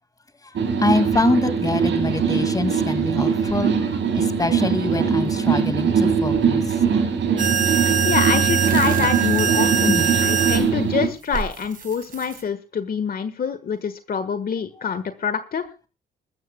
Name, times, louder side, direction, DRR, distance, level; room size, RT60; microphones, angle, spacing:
voice 1, 0.5-6.6 6.9-7.0 9.9-10.1, left 2 dB, 20° left, 11 dB, 2.1 m, -25 dB
sound 1, 0.5-11.1, right 6 dB, 70° right, 5.3 m, -22 dB
sound 2, 7.4-10.6 11.3-12.4, right 7 dB, 45° right, 3.5 m, -22 dB
voice 2, 8.0-15.9, left 6 dB, 50° left, 11 dB, 1.5 m, -26 dB
21.5 x 14.0 x 2.2 m, 0.33 s
cardioid pair, 90°, 20 cm